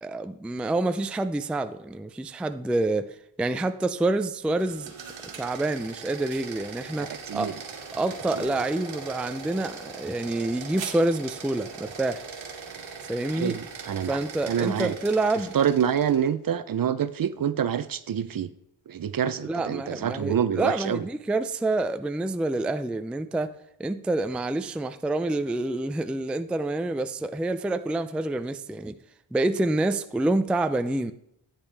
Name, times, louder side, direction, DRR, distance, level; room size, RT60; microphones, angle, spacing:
voice 1, 0.0-4.9 5.4-7.5 7.9-12.2 13.0-13.6 14.1-15.5 19.5-23.5 23.8-29.0 29.3-31.1, right 2 dB, ahead, 10 dB, 0.4 m, -27 dB
sound 1, 4.5-16.3, right 5 dB, 70° right, 1.8 m, -40 dB
voice 2, 7.0-7.6 8.3-8.6 13.3-14.2 14.5-15.0 15.5-18.5 18.9-21.0, right 8 dB, 45° right, 14 dB, 0.6 m, -27 dB
10.0 x 8.5 x 3.4 m, 0.75 s
cardioid pair, 70°, 48 cm